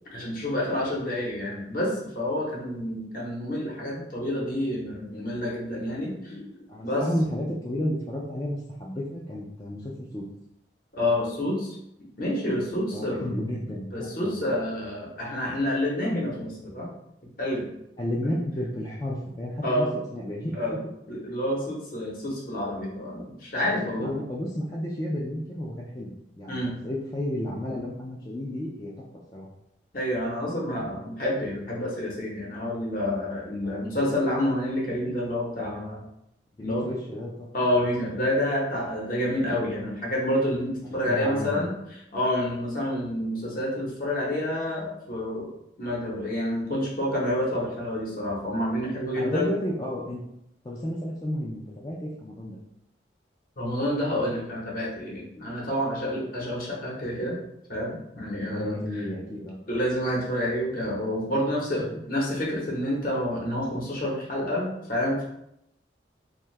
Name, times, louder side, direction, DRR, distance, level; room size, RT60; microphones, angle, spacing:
voice 1, 0.1-6.5 6.8-7.0 10.9-11.8 12.2-13.3 13.9-16.9 17.4-17.7 18.2-18.4 19.6-19.9 20.5-20.8 21.1-24.1 26.5-26.7 29.9-36.0 36.6-36.9 37.5-41.7 42.1-45.5 45.8-49.5 53.6-57.4 57.7-59.0 59.7-65.2, left 1 dB, 50° left, -4 dB, 0.8 m, -28 dB
voice 2, 6.7-10.2 12.9-14.3 18.0-20.6 23.8-26.6 26.8-28.9 29.3-29.5 33.6-33.9 36.6-37.5 40.8-41.7 49.2-50.2 50.6-52.6 58.4-59.6, left 1 dB, 20° left, -5 dB, 0.3 m, -32 dB
2.7 x 2.2 x 3.1 m, 0.79 s
head